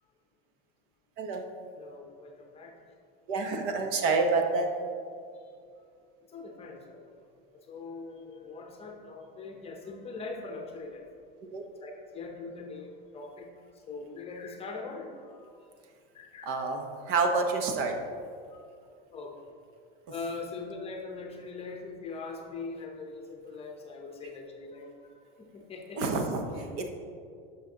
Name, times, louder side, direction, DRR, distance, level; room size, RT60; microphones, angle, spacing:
voice 1, 1.7-2.8 6.3-7.1 7.7-11.1 11.8-13.5 13.9-15.5 16.1-16.6 18.5-18.6 19.1-19.5 20.1-26.0 26.6-26.7, left 3 dB, 20° left, 2 dB, 0.8 m, -42 dB
voice 2, 3.3-4.7 11.5-11.6 16.4-17.9 26.0-26.4 26.8-26.9, right 4 dB, 50° right, 4 dB, 1.0 m, -28 dB
11.5 x 5.9 x 3.8 m, 2.3 s
supercardioid pair, 155°, 29 cm